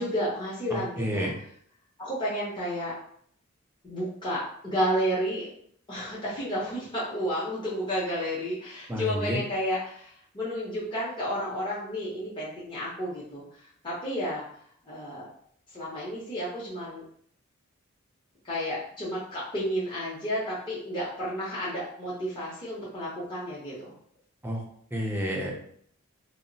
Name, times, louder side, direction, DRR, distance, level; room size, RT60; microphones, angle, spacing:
voice 1, 0.0-1.3 2.0-2.9 3.8-5.5 5.9-14.4 14.8-15.3 15.7-17.1 18.4-23.9, equal, 25° left, -8 dB, 0.7 m, -31 dB
voice 2, 0.7-1.3 8.9-9.4 24.4-24.6 24.9-25.5, equal, 10° right, -1 dB, 0.5 m, -30 dB
2.2 x 2.1 x 3.8 m, 0.63 s
head